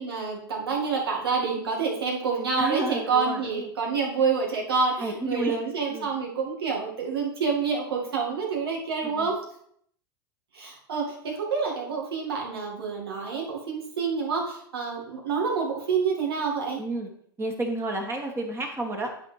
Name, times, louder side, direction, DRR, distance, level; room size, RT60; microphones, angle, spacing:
voice 1, 0.0-9.3 10.5-16.8, right 5 dB, 80° right, -1 dB, 2.1 m, -28 dB
voice 2, 2.6-3.7 5.0-5.6 5.9-6.1 9.0-9.3 16.8-17.1 17.4-19.1, right 2 dB, 20° right, 2 dB, 1.4 m, -31 dB
11.0 x 4.3 x 3.4 m, 0.66 s
hypercardioid pair, 95°, 13 cm